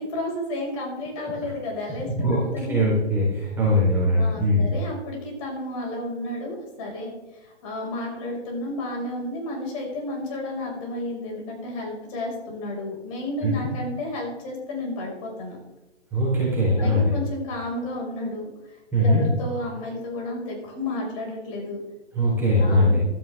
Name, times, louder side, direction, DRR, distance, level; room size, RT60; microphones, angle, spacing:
voice 1, 0.0-2.8 4.1-15.6 16.8-21.8 22.6-23.0, left 1 dB, 30° left, -1 dB, 5.8 m, -32 dB
voice 2, 2.0-2.4 2.7-4.7 13.4-13.5 16.1-17.1 18.9-19.2 22.1-23.0, left 1 dB, 5° right, -7 dB, 4.0 m, -21 dB
16.0 x 13.5 x 3.6 m, 0.97 s
hypercardioid pair, 150°, 35 cm